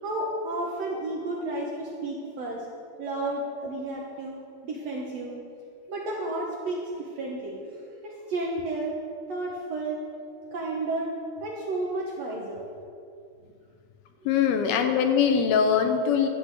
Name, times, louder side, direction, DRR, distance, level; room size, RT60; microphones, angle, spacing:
voice 1, 0.0-2.7 3.0-4.4 4.6-5.4 5.9-9.0 9.3-10.0 10.5-11.1 11.4-12.6 14.7-14.9, right 2 dB, 65° right, -2 dB, 1.7 m, -32 dB
voice 2, 14.3-16.3, left 7 dB, 85° left, 6 dB, 2.8 m, -22 dB
12.5 x 6.2 x 8.1 m, 2.3 s
omnidirectional pair, 4.3 m